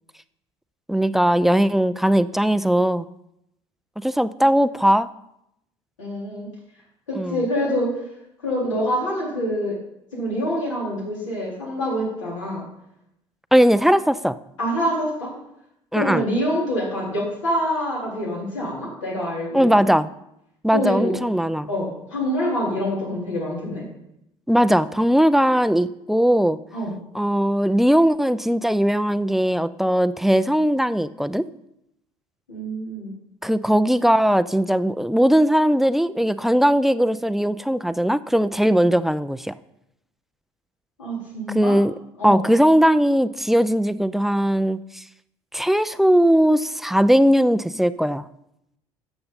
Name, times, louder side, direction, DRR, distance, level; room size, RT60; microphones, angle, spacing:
voice 1, 0.9-3.1 4.0-5.1 7.2-7.4 13.5-14.4 15.9-16.2 19.5-20.1 20.6-21.7 24.5-26.6 27.1-31.5 33.4-39.5 41.5-41.9 42.2-45.0 45.5-48.3, equal, ahead, 15 dB, 0.4 m, -19 dB
voice 2, 6.0-6.5 7.1-7.9 8.4-9.8 10.1-12.6 14.6-15.3 15.9-19.9 20.7-21.1 21.7-23.8 26.7-26.9 32.5-33.1 41.0-41.8 42.2-42.4, equal, 80° left, -5 dB, 3.9 m, -26 dB
12.0 x 7.8 x 4.1 m, 0.81 s
figure-of-eight pair, 60°, 16 cm